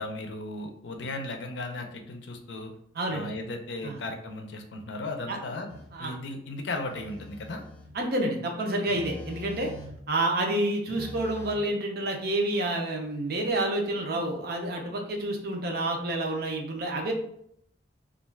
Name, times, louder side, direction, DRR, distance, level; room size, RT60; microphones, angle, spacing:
voice 1, 0.0-2.7 3.1-7.6, left 2 dB, 70° left, 4 dB, 0.5 m, -36 dB
voice 2, 2.9-3.3 3.8-4.0 5.3-5.4 5.9-6.1 7.9-9.7 10.1-17.1, right 1 dB, 55° right, 2 dB, 0.5 m, -29 dB
Telephone, 5.7-5.9 6.9-8.0 8.9-10.1 10.9-11.6, equal, 10° left, 0.5 m, -43 dB
2.3 x 2.3 x 3.2 m, 0.70 s
head